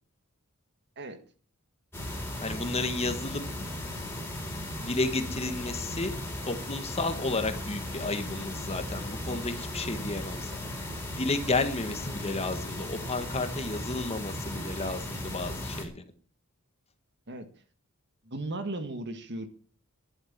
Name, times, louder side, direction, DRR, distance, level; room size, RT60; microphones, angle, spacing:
sound 1, 1.9-15.8, left 1 dB, 10° left, 4.3 m, -36 dB
voice 1, 2.4-3.4 4.8-6.1 6.5-10.7 11.2-16.0, left 2 dB, 30° left, 8 dB, 1.6 m, -32 dB
voice 2, 18.3-19.5, right 2 dB, 50° right, 9 dB, 1.8 m, -36 dB
11.5 x 11.0 x 7.4 m, 0.42 s
head